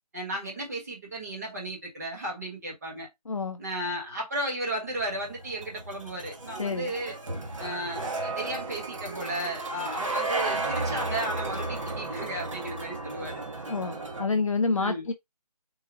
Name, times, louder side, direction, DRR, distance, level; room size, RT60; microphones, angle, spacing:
voice 1, 0.1-3.1 3.6-7.1 7.6-13.4 14.8-15.1, right 1 dB, 25° right, 1.4 m, -34 dB
voice 2, 3.3-3.6 6.6-6.9 13.7-15.1, left 4 dB, 55° left, 0.5 m, -28 dB
sound 1, 5.0-14.3, right 2 dB, 50° right, 1.0 m, -34 dB
3.8 x 2.4 x 4.5 m
figure-of-eight pair, 175°, 21 cm